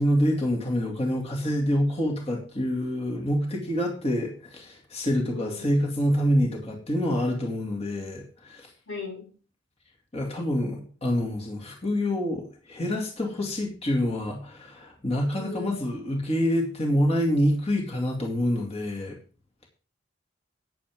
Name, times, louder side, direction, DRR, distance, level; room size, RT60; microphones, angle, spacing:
voice 1, 0.0-8.7 10.1-19.2, equal, 35° left, 0 dB, 2.3 m, -26 dB
voice 2, 5.2-5.8 8.9-9.2 15.3-15.8, left 3 dB, 85° left, 0 dB, 5.0 m, -37 dB
13.5 x 9.4 x 3.6 m, 0.38 s
head